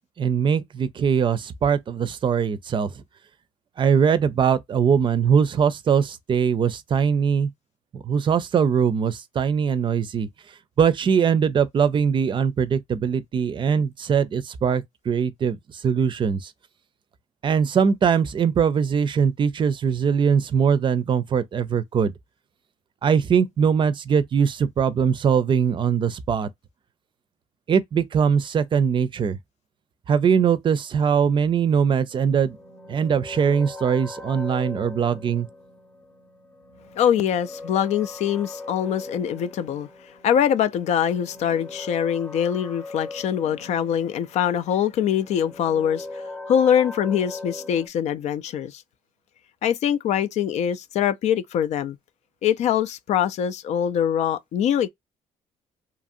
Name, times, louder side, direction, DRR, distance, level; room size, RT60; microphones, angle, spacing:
voice 1, 0.2-2.9 3.8-7.5 7.9-10.3 10.8-15.6 15.8-16.5 17.4-22.1 23.0-26.5 27.7-29.4 30.1-32.6 32.9-35.5, right 7 dB, 45° right, 0.4 m, -21 dB
sound 1, 32.1-47.9, left 2 dB, 15° left, 0.8 m, -40 dB
voice 2, 37.0-39.9 40.2-46.1 46.5-48.8 49.6-52.0 52.4-54.9, left 9 dB, 70° left, 0.4 m, -23 dB
2.9 x 2.5 x 2.5 m
cardioid pair, 85°, 12 cm